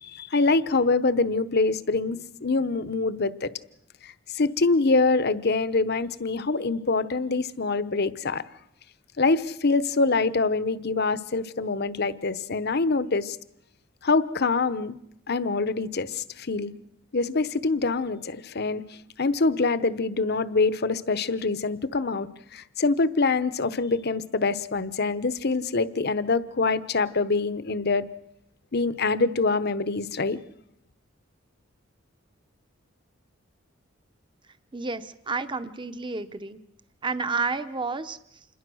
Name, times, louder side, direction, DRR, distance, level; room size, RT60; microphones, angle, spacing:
voice 1, 0.0-3.5 4.0-8.4 9.2-13.4 14.0-15.0 15.3-16.7 17.1-18.8 19.2-28.1 28.7-30.4, left 3 dB, 55° left, 15 dB, 1.0 m, -25 dB
voice 2, 34.7-36.6 37.0-38.5, right 4 dB, 25° right, 11 dB, 0.9 m, -31 dB
27.5 x 21.5 x 6.3 m, 0.81 s
head